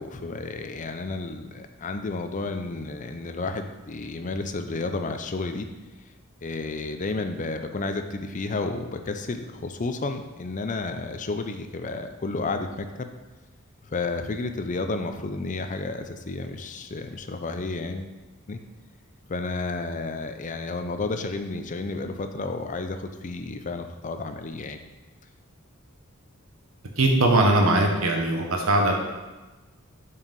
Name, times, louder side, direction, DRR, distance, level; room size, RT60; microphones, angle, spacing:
voice 1, 0.0-5.7 6.4-13.1 13.9-18.1 18.5-18.6 19.3-24.8, left 3 dB, 40° left, 7 dB, 0.5 m, -31 dB
voice 2, 27.0-29.0, right 2 dB, 80° right, 2 dB, 1.1 m, -20 dB
5.8 x 4.7 x 5.3 m, 1.2 s
head